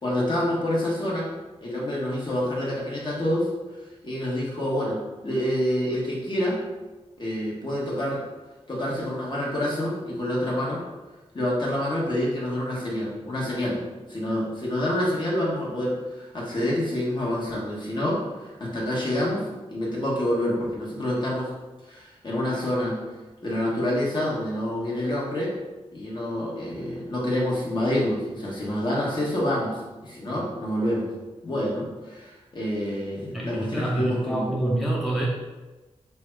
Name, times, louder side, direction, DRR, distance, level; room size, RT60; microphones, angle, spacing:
voice 1, 0.0-1.3 1.6-3.5 4.0-6.6 7.2-8.2 8.7-10.8 11.3-13.8 14.1-21.5 21.9-23.0 23.4-25.5 25.9-31.1 31.4-34.5, left 1 dB, 40° left, -5 dB, 1.2 m, -27 dB
voice 2, 33.3-35.3, right 1 dB, ahead, -4 dB, 0.6 m, -27 dB
3.4 x 2.3 x 4.4 m, 1.2 s
wide cardioid pair, 100°, 11 cm